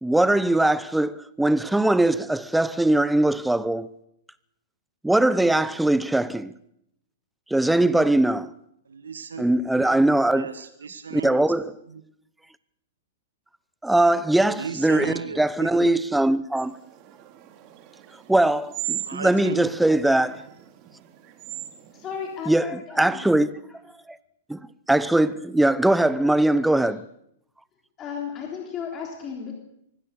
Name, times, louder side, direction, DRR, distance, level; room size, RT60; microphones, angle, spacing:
voice 1, 0.0-3.9 5.0-6.5 7.5-8.5 9.4-10.5 11.1-11.7 13.8-16.7 18.3-20.4 22.5-22.7 23.0-23.5 24.5-24.6 24.9-27.0, right 1 dB, 5° right, 0.8 m, -21 dB
voice 2, 8.9-9.6 10.3-11.4 11.9-12.0 14.6-16.0 19.0-19.7, right 5 dB, 80° right, 1.5 m, -35 dB
sound 1, 16.6-22.5, right 13 dB, 40° right, 2.5 m, -38 dB
voice 3, 21.9-23.2 26.8-26.9 28.0-29.5, left 7 dB, 25° left, 3.4 m, -34 dB
24.5 x 16.5 x 6.6 m
hypercardioid pair, 110°, 0 cm